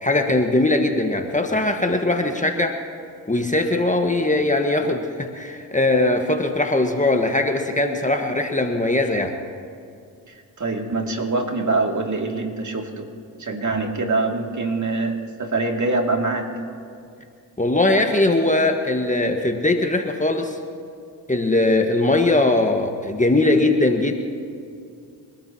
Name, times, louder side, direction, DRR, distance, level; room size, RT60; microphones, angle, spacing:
voice 1, 0.0-2.8 3.3-9.3 17.6-20.6 21.3-24.1, left 2 dB, 15° left, 4 dB, 1.5 m, -20 dB
voice 2, 10.3-13.1 13.4-16.5, right 3 dB, 40° right, 2 dB, 2.7 m, -24 dB
28.5 x 13.0 x 3.0 m, 2.4 s
hypercardioid pair, 40°, 43 cm